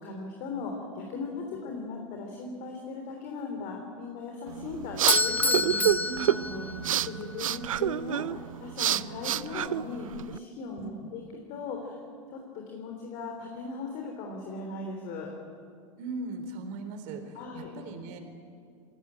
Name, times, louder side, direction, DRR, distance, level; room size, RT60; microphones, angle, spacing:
voice 1, 0.0-6.6 7.1-11.2 11.5-12.0 12.3-15.3 17.3-17.7, left 4 dB, 50° left, 2 dB, 3.6 m, -38 dB
sound 1, 4.5-10.4, right 11 dB, 80° right, 0.6 m, -29 dB
Bell / Doorbell, 5.1-7.2, left 2 dB, 10° left, 1.2 m, -28 dB
voice 2, 6.0-6.9 10.8-11.1 16.0-18.2, right 3 dB, 50° right, 6 dB, 4.0 m, -39 dB
21.0 x 17.0 x 9.9 m, 2.3 s
hypercardioid pair, 95°, 17 cm